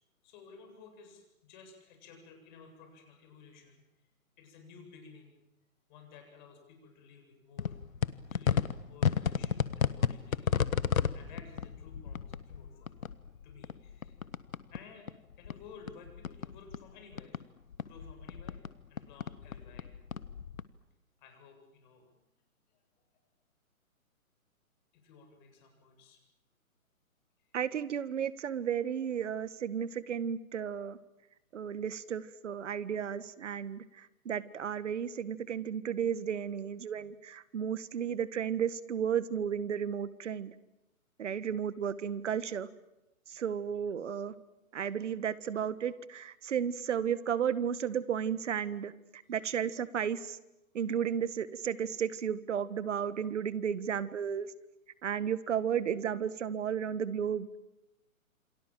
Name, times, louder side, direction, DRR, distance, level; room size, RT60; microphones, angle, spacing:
voice 1, 0.2-4.1 4.4-5.3 5.9-7.8 8.3-10.6 11.1-13.0 13.4-14.2 14.7-15.1 15.4-17.4 17.8-18.6 18.9-19.9 21.2-22.2 22.7-23.0 24.9-26.2 27.4-27.6 41.2-41.5 43.3-43.5 49.3-49.4, left 5 dB, 35° left, 4 dB, 7.9 m, -55 dB
sound 1, 7.6-14.8 15.1-17.4 17.7-20.6, left 7 dB, 70° left, 1.5 m, -33 dB
voice 2, 27.5-31.0 31.5-33.8 34.2-40.5 41.2-42.7 43.3-44.3 44.7-48.9 49.3-50.4 50.7-54.5 55.0-57.6, right 8 dB, 55° right, 16 dB, 1.7 m, -33 dB
28.5 x 25.5 x 7.7 m, 0.92 s
hypercardioid pair, 145°, 42 cm